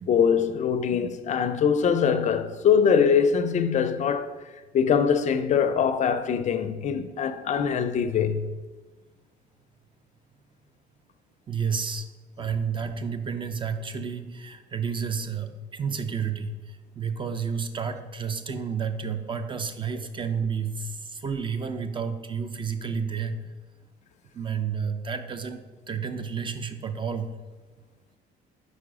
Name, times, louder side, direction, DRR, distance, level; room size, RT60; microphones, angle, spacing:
voice 1, 0.1-4.3 4.7-8.6, left 7 dB, 45° left, 0.4 m, -23 dB
voice 2, 11.5-12.1 12.4-16.6 17.0-23.4 24.3-27.3, right 6 dB, 30° right, 0.4 m, -31 dB
4.8 x 4.1 x 4.7 m
cardioid pair, 110°, 17 cm